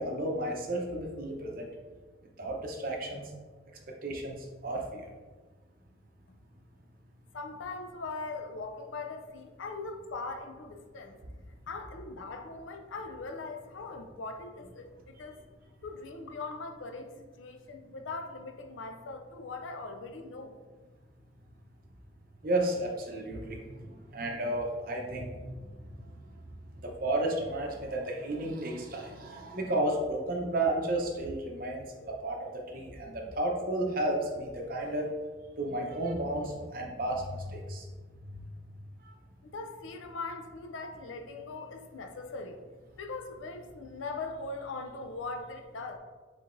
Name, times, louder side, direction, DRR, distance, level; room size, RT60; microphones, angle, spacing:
voice 1, 0.0-1.7 2.4-3.3 4.0-4.4 4.6-5.1 22.4-25.6 26.8-35.1 35.6-37.9 38.2-38.4, right 1 dB, 45° right, 0 dB, 0.7 m, -32 dB
voice 2, 7.3-11.2 11.7-15.4 15.8-20.6 39.5-42.6 43.0-46.0, left 3 dB, 80° left, 5 dB, 0.5 m, -40 dB
4.7 x 3.9 x 2.5 m, 1.4 s
head